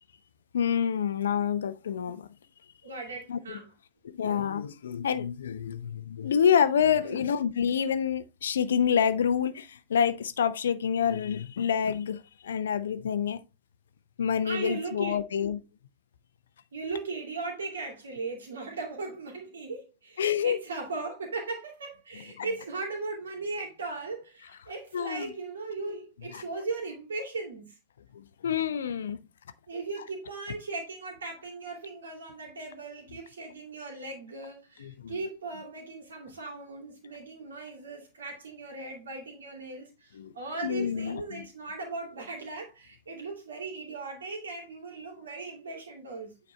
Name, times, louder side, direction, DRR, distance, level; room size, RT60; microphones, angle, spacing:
voice 1, 0.5-2.3 3.3-3.6 4.1-13.4 14.2-15.6 20.2-20.6 22.4-22.5 24.9-25.3 26.3-26.4 28.1-29.2 34.8-35.1 40.2-40.3 40.6-41.5, left 8 dB, 65° left, 0.5 m, -27 dB
voice 2, 2.8-3.7 7.0-7.2 14.4-15.2 16.7-27.8 29.7-46.3, right 3 dB, 70° right, 2.5 m, -38 dB
8.7 x 4.1 x 3.2 m
figure-of-eight pair, 90°, 0 cm